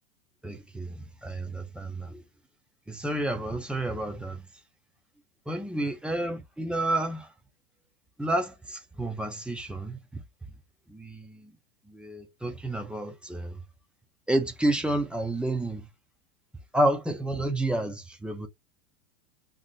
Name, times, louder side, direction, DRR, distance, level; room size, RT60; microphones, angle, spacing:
voice 1, 0.4-2.2 2.9-4.4 5.5-7.3 8.2-10.2 10.9-11.5 11.9-13.6 14.3-15.9 16.7-18.5, right 1 dB, 5° right, 0.4 m, -30 dB
2.5 x 2.1 x 3.7 m
hypercardioid pair, 110°, 40 cm